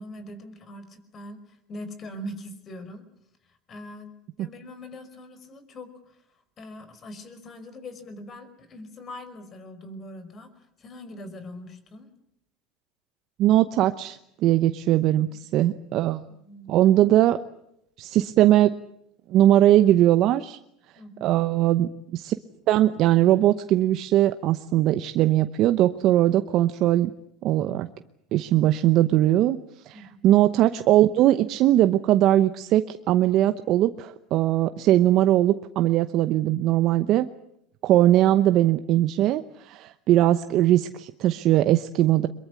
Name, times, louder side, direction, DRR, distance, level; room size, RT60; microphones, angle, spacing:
voice 1, 0.0-3.0 3.4-12.1 16.3-16.7 20.9-21.4 29.9-30.3, left 1 dB, 40° left, 11 dB, 5.1 m, -42 dB
voice 2, 13.4-16.2 16.7-17.4 18.0-18.7 19.3-20.6 21.2-22.3 22.7-27.1 27.4-27.9 28.3-29.6 29.8-37.3 37.8-42.3, right 13 dB, 55° right, 10 dB, 0.9 m, -20 dB
23.0 x 22.5 x 8.4 m, 0.78 s
hypercardioid pair, 90°, 0 cm